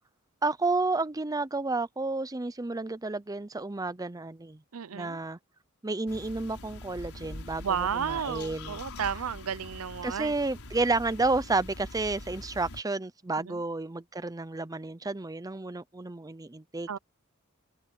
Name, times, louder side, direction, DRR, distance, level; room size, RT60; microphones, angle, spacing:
voice 1, 0.4-4.6 4.9-5.4 5.8-8.8 10.0-17.0, right 3 dB, 15° right, 0.6 m, -31 dB
voice 2, 4.7-5.2 7.6-10.4 13.4-13.6 16.9-17.0, right 7 dB, 75° right, 0.6 m, -32 dB
sound 1, 6.1-12.8, left 1 dB, 85° left, 4.4 m, -43 dB
open air
head